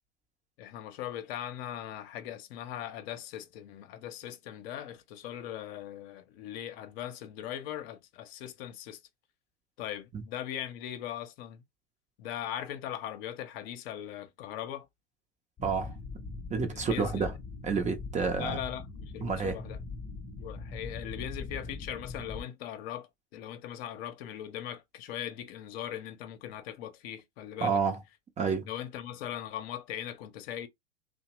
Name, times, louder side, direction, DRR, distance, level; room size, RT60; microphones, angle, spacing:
voice 1, 0.6-9.0 9.8-11.6 12.2-14.9 16.7-17.4 18.4-19.8 20.4-27.8 28.7-30.7, left 11 dB, 60° left, 0.7 m, -40 dB
sound 1, 15.6-22.4, left 3 dB, 20° left, 0.8 m, -41 dB
voice 2, 15.6-15.9 16.5-17.3 17.6-18.6 19.2-19.5 27.6-28.0 28.4-28.7, right 5 dB, 20° right, 0.7 m, -29 dB
2.8 x 2.1 x 3.0 m
hypercardioid pair, 95°, 35 cm